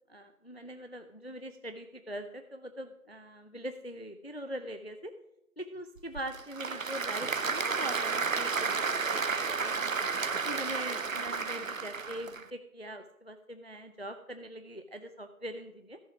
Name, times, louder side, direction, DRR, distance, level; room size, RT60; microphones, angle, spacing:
voice 1, 0.1-5.1 5.6-9.4 9.6-9.8 10.5-16.0, right 1 dB, 45° left, 8 dB, 0.5 m, -42 dB
Applause / Crowd, 6.0-12.4, right 4 dB, 65° right, 0.6 m, -32 dB
14.0 x 5.7 x 5.0 m, 0.85 s
figure-of-eight pair, 180°, 43 cm